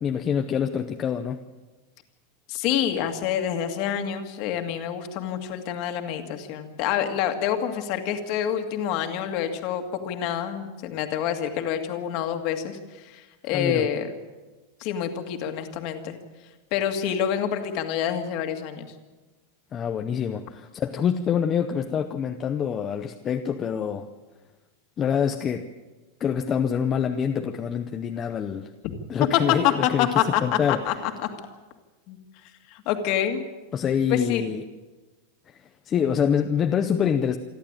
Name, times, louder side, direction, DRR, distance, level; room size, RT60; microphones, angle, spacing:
voice 1, 0.0-1.4 13.5-13.9 19.7-24.1 25.0-25.7 26.2-28.7 29.1-30.1 30.4-30.8 33.7-34.6 35.5-35.6 35.8-37.4, left 7 dB, 20° left, 6 dB, 0.7 m, -26 dB
voice 2, 2.5-14.1 14.8-16.2 16.7-18.9 28.8-28.9 29.3-29.6 29.8-31.1 32.1-32.2 32.7-33.4 34.1-34.4, left 9 dB, 40° left, 6 dB, 2.0 m, -27 dB
28.0 x 11.5 x 9.0 m, 1.2 s
supercardioid pair, 175°, 0 cm